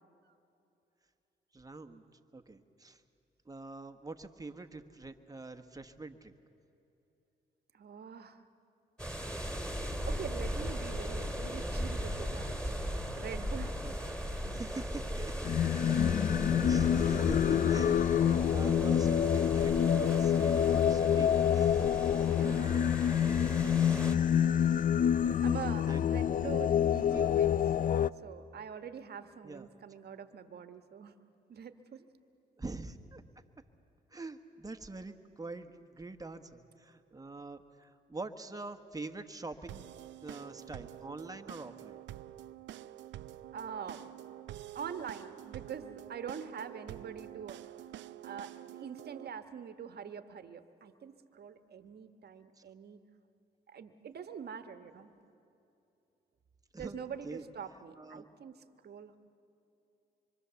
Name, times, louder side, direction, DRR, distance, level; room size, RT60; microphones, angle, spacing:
voice 1, 1.5-2.0 2.3-3.0 3.4-6.3 13.8-13.9 14.5-15.3 16.6-21.8 24.1-24.3 25.2-25.4 25.9-26.2 27.0-27.4 29.4-29.7 32.6-33.2 34.1-39.9 40.2-42.0 56.7-57.0 57.2-57.5 58.0-58.3, right 3 dB, 20° right, 6 dB, 1.4 m, -45 dB
voice 2, 7.7-8.4 10.1-12.8 13.1-13.8 22.4-24.7 25.0-27.6 28.2-31.1 31.5-32.1 43.5-44.4 44.7-47.6 48.2-53.0 53.7-55.1 56.8-59.2, right 7 dB, 60° right, 8 dB, 1.3 m, -44 dB
sound 1, 9.0-24.2, equal, 5° left, 3.2 m, -38 dB
Singing, 15.4-28.1, left 9 dB, 45° left, 0.5 m, -27 dB
sound 2, 39.7-49.3, right 13 dB, 80° right, 0.5 m, -48 dB
25.5 x 24.0 x 7.1 m, 2.8 s
cardioid pair, 70°, 19 cm